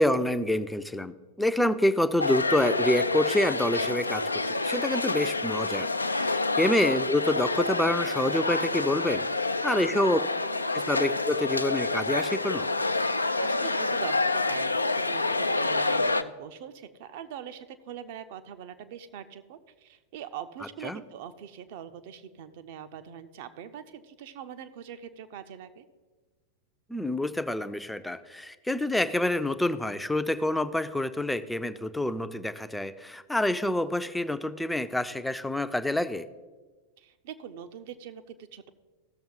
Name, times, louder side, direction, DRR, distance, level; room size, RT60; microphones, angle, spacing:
voice 1, 0.0-5.9 6.1-9.3 9.6-10.2 10.7-12.7 20.8-21.0 26.9-36.2, left 1 dB, 5° left, 11 dB, 0.5 m, -27 dB
sound 1, 2.2-16.2, left 3 dB, 80° left, 0.3 m, -28 dB
voice 2, 9.9-10.2 13.4-25.8 37.0-38.7, right 9 dB, 50° right, 10 dB, 0.7 m, -42 dB
15.5 x 7.0 x 3.9 m, 1.3 s
figure-of-eight pair, 90°, 0 cm